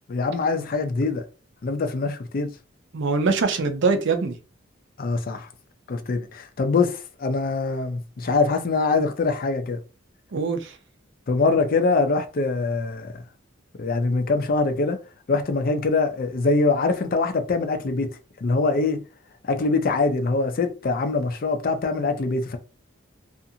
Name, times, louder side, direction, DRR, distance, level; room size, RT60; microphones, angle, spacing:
voice 1, 0.1-1.2 1.6-2.5 5.0-5.5 5.9-9.8 11.3-13.1 13.8-15.0 15.3-18.1 18.4-19.0 19.5-22.6, left 3 dB, 45° left, 0.4 m, -23 dB
voice 2, 2.9-4.4 10.3-10.7, right 4 dB, 60° right, 0.5 m, -23 dB
2.5 x 2.5 x 2.7 m
head